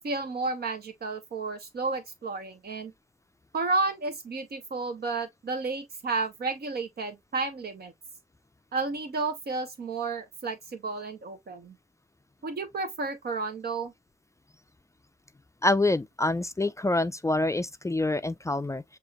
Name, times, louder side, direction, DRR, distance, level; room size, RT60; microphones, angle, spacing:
voice 1, 0.0-2.9 3.5-7.9 8.7-11.8 12.4-13.9, right 3 dB, 70° right, 1.0 m, -32 dB
voice 2, 15.6-18.8, left 2 dB, 20° left, 0.3 m, -26 dB
6.1 x 2.7 x 2.3 m
cardioid pair, 55°, 17 cm